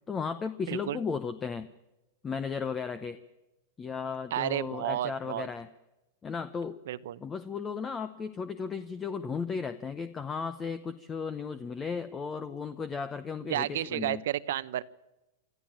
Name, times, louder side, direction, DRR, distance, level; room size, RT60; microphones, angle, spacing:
voice 1, 0.1-1.7 2.2-3.2 3.8-5.7 6.2-6.8 7.2-14.2, left 5 dB, 15° left, 13 dB, 0.7 m, -35 dB
voice 2, 0.7-1.0 4.3-5.5 6.9-7.2 13.5-14.8, right 12 dB, 70° right, 16 dB, 0.9 m, -31 dB
26.0 x 14.0 x 8.9 m, 0.98 s
supercardioid pair, 150°, 0 cm